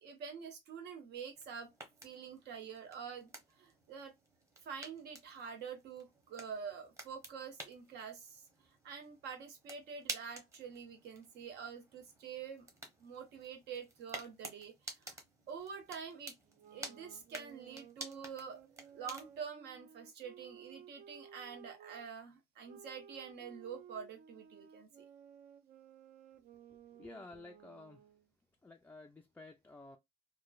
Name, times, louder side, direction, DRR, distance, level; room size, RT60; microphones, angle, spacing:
voice 1, 0.0-1.7 2.0-4.1 4.6-8.4 8.8-12.7 13.0-15.2 15.5-16.3 16.7-25.0, right 6 dB, 75° right, 1.0 m, -47 dB
sound 1, 1.3-19.5, right 2 dB, 15° right, 0.9 m, -52 dB
sound 2, 16.4-22.1 22.7-28.3, right 8 dB, 55° right, 0.4 m, -57 dB
voice 2, 26.7-28.1 28.6-30.0, left 2 dB, 10° left, 0.3 m, -53 dB
3.0 x 2.2 x 2.2 m
cardioid pair, 110°, 17 cm